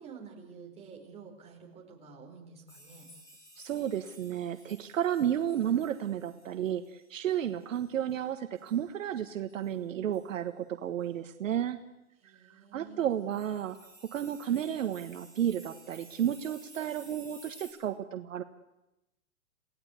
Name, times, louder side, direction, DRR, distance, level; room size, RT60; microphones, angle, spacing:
voice 1, 0.0-3.1 12.2-13.0, right 5 dB, 15° right, -1 dB, 4.5 m, -49 dB
sound 1, 2.7-8.9 9.1-9.2 9.5-9.7 10.1-10.3 11.0-11.1 13.0-17.7, right 1 dB, 5° left, 5.5 m, -55 dB
voice 2, 3.6-11.8 12.7-18.4, right 10 dB, 65° right, 8 dB, 1.5 m, -32 dB
28.5 x 17.5 x 8.4 m, 0.93 s
hypercardioid pair, 155°, 42 cm